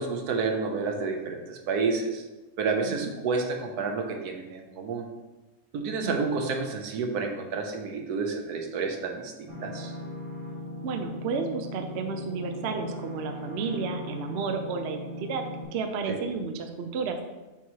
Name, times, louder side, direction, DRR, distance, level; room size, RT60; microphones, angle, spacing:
voice 1, 0.0-2.2 2.6-5.1 5.7-9.9 16.1-16.2, right 4 dB, 80° right, 3 dB, 1.3 m, -30 dB
sound 1, 9.5-15.6, left 1 dB, 20° left, 1.8 m, -38 dB
voice 2, 10.8-15.4 15.7-17.2, right 5 dB, 60° right, 5 dB, 0.7 m, -32 dB
7.2 x 3.0 x 4.6 m, 1.1 s
omnidirectional pair, 1.7 m